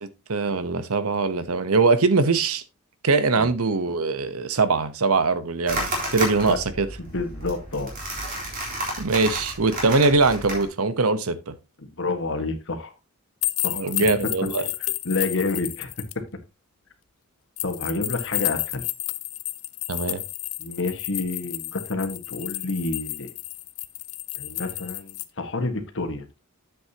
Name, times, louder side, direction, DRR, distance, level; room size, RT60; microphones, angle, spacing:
voice 1, 0.0-2.6 3.0-6.9 9.0-11.5 13.7-14.7 19.9-20.2, right 3 dB, 75° right, 0.9 m, -22 dB
sound 1, 5.7-10.6, right 1 dB, 40° right, 3.8 m, -31 dB
voice 2, 7.0-7.9 11.8-12.9 13.6-13.9 15.0-15.9 17.6-18.8 20.6-23.3 24.3-26.2, left 3 dB, 60° left, 1.6 m, -29 dB
sound 2, 13.4-16.1 17.6-25.2, left 18 dB, 80° left, 0.7 m, -31 dB
9.9 x 7.9 x 2.9 m
head